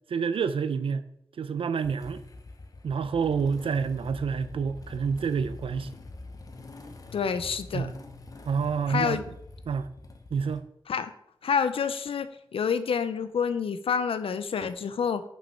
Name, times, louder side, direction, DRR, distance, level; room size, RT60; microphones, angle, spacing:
voice 1, 0.1-1.0 1.4-2.2 2.8-5.9 7.7-8.0 8.5-9.2 9.7-9.9 10.3-10.7, right 6 dB, 80° right, 0.5 m, -28 dB
Motorcycle / Engine starting, 1.8-10.6, left 2 dB, 40° left, 0.8 m, -45 dB
voice 2, 7.1-7.9 8.9-9.2 10.9-11.1 11.4-15.2, left 6 dB, 85° left, 0.6 m, -28 dB
6.3 x 5.3 x 5.6 m
wide cardioid pair, 110°, 9 cm